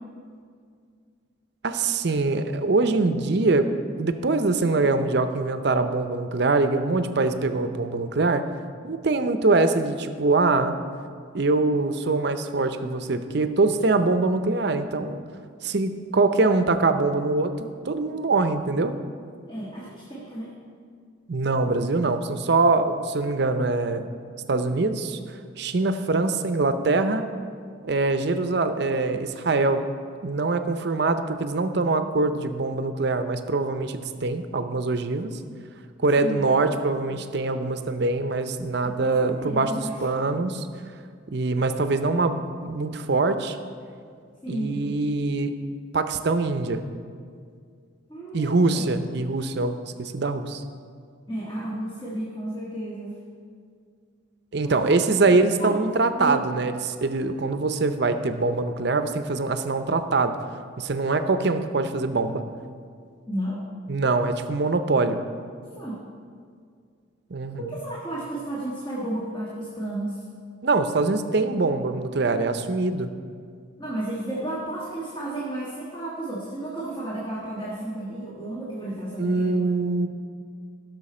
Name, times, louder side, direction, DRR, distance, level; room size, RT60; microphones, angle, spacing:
voice 1, 1.6-3.7 4.0-8.4 8.8-10.8 11.3-15.2 15.6-18.9 21.3-24.1 24.5-27.3 27.8-29.8 30.2-35.3 36.0-40.7 41.3-43.6 44.5-45.5 45.9-46.8 48.3-50.6 54.5-60.4 60.8-62.4 63.9-65.2 67.3-67.8 70.6-73.1 79.2-80.1, right 3 dB, 55° right, 9 dB, 0.6 m, -23 dB
voice 2, 19.5-20.5 36.2-36.4 37.1-37.2 38.8-40.0 44.4-44.8 48.1-48.9 51.3-53.2 54.5-55.0 55.6-55.7 56.1-56.4 63.3-63.6 65.7-66.0 67.6-70.2 73.8-79.7, right 1 dB, 20° left, -6 dB, 1.5 m, -33 dB
16.5 x 6.4 x 4.3 m, 2.1 s
head